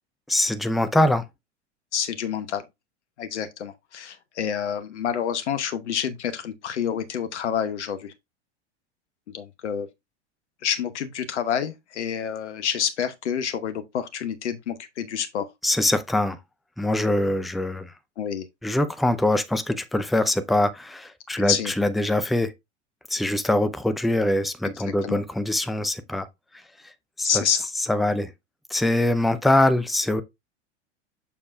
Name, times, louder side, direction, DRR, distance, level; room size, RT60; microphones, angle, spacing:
voice 1, 0.3-1.2 15.6-16.4 16.8-17.9 18.6-22.5 23.1-26.3 26.8-26.9 27.2-27.4 27.8-28.3 28.7-30.2, left 1 dB, ahead, 0.4 m, -23 dB
voice 2, 1.9-2.6 3.2-8.1 9.3-9.9 10.6-15.5 18.2-18.4 21.4-21.7 25.0-25.2 27.2-27.7, left 8 dB, 75° left, 0.9 m, -28 dB
7.0 x 6.5 x 2.3 m
figure-of-eight pair, 95°, 35 cm